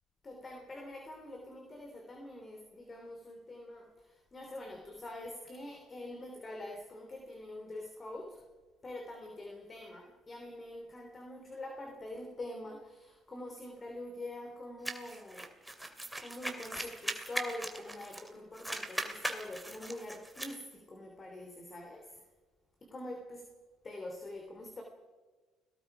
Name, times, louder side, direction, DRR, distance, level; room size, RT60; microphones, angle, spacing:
voice 1, 0.2-8.4 8.8-15.5 16.2-22.2 22.8-23.5 23.8-24.8, left 1 dB, 25° left, 2 dB, 3.2 m, -45 dB
sound 1, 14.8-18.3 18.5-20.6, right 1 dB, 5° right, 2.5 m, -39 dB
29.5 x 18.5 x 4.9 m, 1.4 s
cardioid pair, 105°, 0 cm